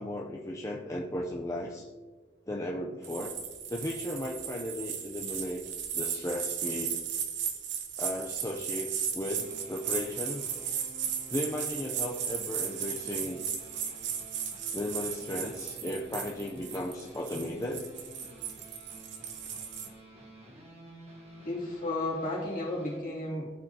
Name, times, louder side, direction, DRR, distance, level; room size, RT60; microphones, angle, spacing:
voice 1, 0.0-1.9 2.5-3.3 3.7-5.6 5.9-7.0 8.0-10.5 11.3-13.4 14.7-17.8, left 1 dB, 15° left, -2 dB, 0.5 m, -35 dB
sound 1, 3.0-19.9, right 8 dB, 65° right, 0.9 m, -36 dB
sound 2, 9.4-23.0, right 1 dB, 35° right, 1.4 m, -51 dB
voice 2, 21.4-23.5, left 1 dB, 45° left, -5 dB, 2.5 m, -33 dB
14.5 x 4.8 x 2.8 m, 1.4 s
head